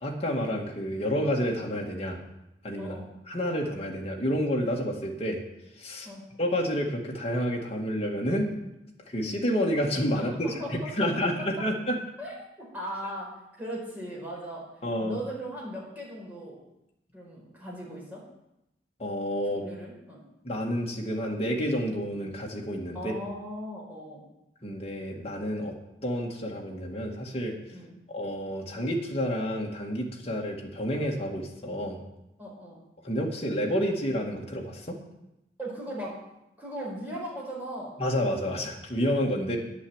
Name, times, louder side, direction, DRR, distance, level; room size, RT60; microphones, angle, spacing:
voice 1, 0.0-2.2 2.6-2.9 3.3-5.4 5.8-6.1 6.4-8.5 9.1-10.5 11.0-11.3 11.6-12.0 14.8-15.2 19.0-19.6 20.4-23.1 24.6-25.7 26.0-27.6 28.1-32.0 33.0-35.0 38.0-39.6, equal, 35° left, -1 dB, 2.0 m, -29 dB
voice 2, 2.8-3.1 6.0-6.3 10.1-11.7 12.2-12.4 12.7-16.6 17.1-18.2 19.5-20.2 22.9-24.2 27.7-27.9 32.4-32.8 35.6-36.2 36.6-37.9, equal, 10° right, -5 dB, 4.6 m, -38 dB
10.0 x 8.1 x 8.0 m, 0.89 s
head